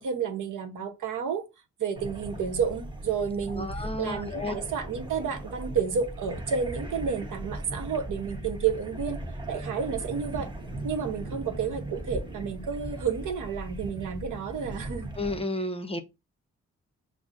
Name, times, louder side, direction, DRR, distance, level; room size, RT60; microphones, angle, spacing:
voice 1, 0.0-1.4 1.8-3.7 4.0-9.2 9.5-10.5 10.8-15.1, right 6 dB, 70° right, 0.8 m, -30 dB
sound 1, 2.0-15.4, right 1 dB, 15° right, 0.9 m, -38 dB
voice 2, 3.5-4.6 15.2-16.0, left 2 dB, 20° left, 0.6 m, -32 dB
6.0 x 2.0 x 2.5 m
supercardioid pair, 50°, 32 cm